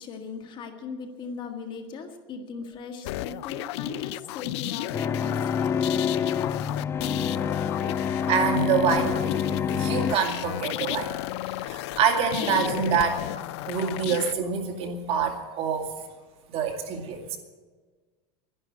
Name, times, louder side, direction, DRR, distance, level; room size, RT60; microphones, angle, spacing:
voice 1, 0.0-5.9, left 5 dB, 35° left, 5 dB, 1.7 m, -39 dB
sound 1, 3.0-14.3, left 16 dB, 70° left, 0.5 m, -33 dB
sound 2, 4.9-10.1, left 7 dB, 15° left, 0.4 m, -27 dB
voice 2, 8.3-9.2 9.7-11.1 11.4-13.2 13.7-16.0 16.5-17.4, right 6 dB, 40° right, 3 dB, 2.2 m, -26 dB
11.5 x 11.0 x 9.3 m, 1.4 s
supercardioid pair, 145°, 15 cm